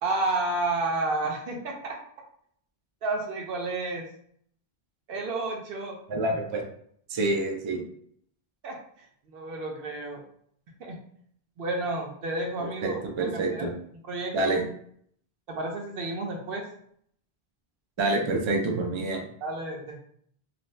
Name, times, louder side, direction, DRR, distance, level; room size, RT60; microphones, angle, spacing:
voice 1, 0.0-2.0 3.0-4.0 5.1-6.0 8.6-8.8 9.3-10.2 10.8-11.0 11.6-13.7 14.0-14.6 15.5-16.6 19.4-20.0, right 2 dB, 70° right, 1 dB, 0.8 m, -31 dB
voice 2, 6.1-6.6 7.1-7.8 12.6-13.7 14.3-14.7 18.0-19.3, right 2 dB, 50° right, 2 dB, 0.3 m, -27 dB
2.6 x 2.1 x 3.1 m, 0.64 s
omnidirectional pair, 1.0 m